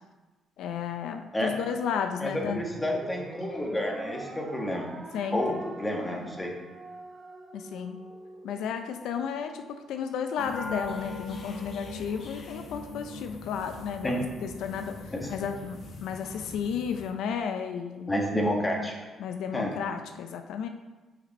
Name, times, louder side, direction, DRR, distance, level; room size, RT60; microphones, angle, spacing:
voice 1, 0.6-2.6 5.1-5.6 7.5-8.0 8.4-18.1 19.2-20.7, left 7 dB, 85° left, 7 dB, 0.4 m, -33 dB
voice 2, 2.2-4.9 5.3-5.5 5.8-6.5 14.0-14.2 15.1-15.3 18.1-18.9 19.5-19.7, left 1 dB, 15° left, 1 dB, 1.3 m, -29 dB
sound 1, 2.4-8.9, right 2 dB, 30° right, 0.8 m, -44 dB
sound 2, 10.4-17.1, left 3 dB, 55° left, 0.9 m, -41 dB
5.9 x 5.3 x 4.1 m, 1.2 s
cardioid pair, 90°, 0 cm